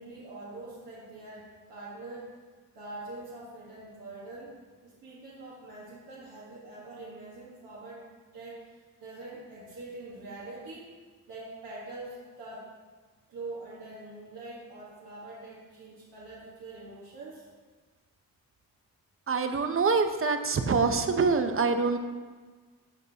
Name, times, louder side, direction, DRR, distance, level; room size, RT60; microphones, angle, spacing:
voice 1, 0.0-2.3 2.7-4.6 4.8-8.0 8.3-10.9 11.3-12.7 13.3-17.5, right 2 dB, 85° right, -7 dB, 1.6 m, -44 dB
voice 2, 19.3-22.0, right 4 dB, 40° right, 8 dB, 0.7 m, -25 dB
13.0 x 5.4 x 2.8 m, 1.4 s
cardioid pair, 65°, 34 cm